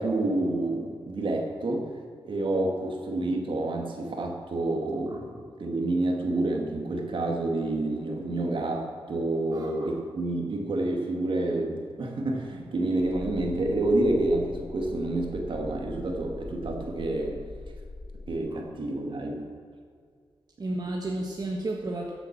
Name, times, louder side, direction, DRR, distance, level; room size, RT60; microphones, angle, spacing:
voice 1, 0.0-1.9 2.2-17.4 18.3-19.4, right 2 dB, 60° right, 2 dB, 2.2 m, -28 dB
voice 2, 9.5-10.0 18.5-18.6 20.6-22.1, right 2 dB, 45° right, -1 dB, 1.6 m, -33 dB
sound 1, 13.0-18.4, left 2 dB, 30° left, 3.3 m, -42 dB
14.5 x 7.9 x 6.0 m, 2.1 s
cardioid pair, 85°, 9 cm